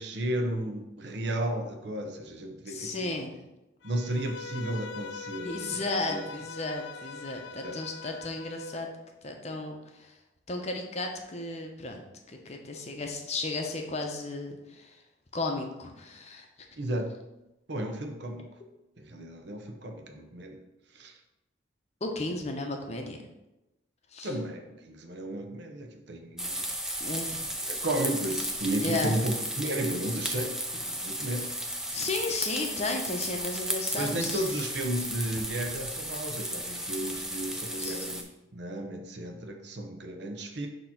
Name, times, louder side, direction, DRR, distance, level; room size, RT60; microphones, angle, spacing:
voice 1, 0.0-3.2 3.8-5.8 6.1-6.2 7.6-7.8 16.8-17.1 17.7-18.5 19.0-20.6 20.9-21.1 24.2-26.7 27.7-31.5 33.9-40.7, right 1 dB, 60° right, 4 dB, 0.8 m, -33 dB
voice 2, 2.7-3.4 5.4-8.9 9.2-10.1 10.5-12.0 12.3-15.0 15.3-16.5 22.0-23.2 24.1-24.3 27.0-27.6 28.8-29.1 31.9-34.4 37.8-38.1, left 2 dB, 35° left, 2 dB, 0.8 m, -34 dB
Bowed string instrument, 3.8-8.8, left 5 dB, 65° left, 0.4 m, -42 dB
sound 1, 26.4-38.2, right 1 dB, 5° right, 0.5 m, -34 dB
6.6 x 3.0 x 5.7 m, 0.95 s
head